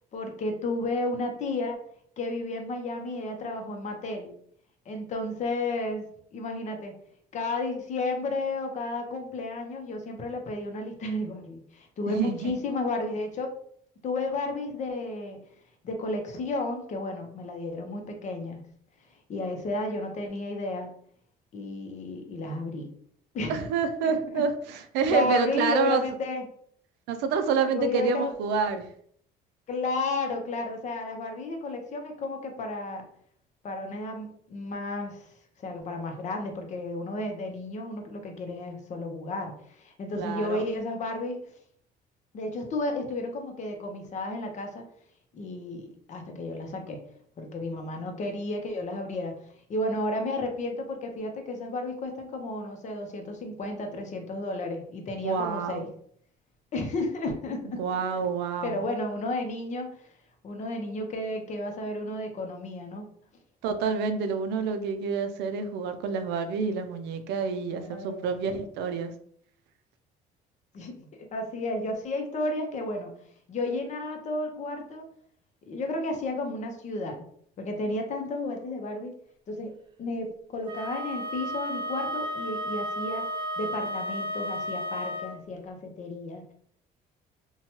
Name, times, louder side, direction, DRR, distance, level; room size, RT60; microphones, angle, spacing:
voice 1, 0.1-1.8 2.2-4.3 4.9-6.1 6.3-6.9 7.3-13.5 14.0-15.4 15.8-18.6 19.3-20.9 21.5-22.9 23.3-23.6 24.0-24.4 25.1-26.4 27.7-28.3 29.7-33.0 33.6-35.3 35.6-41.4 42.3-44.8 45.3-47.0 47.4-49.4 49.7-55.9 56.7-57.8 58.6-59.9 60.4-63.0 67.7-68.6 70.7-71.0 71.3-73.1 73.5-75.1 75.7-77.2 77.6-79.1 79.5-83.3 83.6-86.4, left 2 dB, 45° left, 4 dB, 0.7 m, -32 dB
voice 2, 12.1-12.6 23.5-26.0 27.1-28.9 40.2-40.6 55.2-55.9 57.8-58.9 63.6-69.1, right 5 dB, 90° right, 8 dB, 0.4 m, -28 dB
Wind instrument woodwind instrument, 80.7-85.4, equal, 30° right, 0.4 m, -33 dB
2.8 x 2.2 x 2.9 m, 0.63 s
cardioid pair, 110°, 17 cm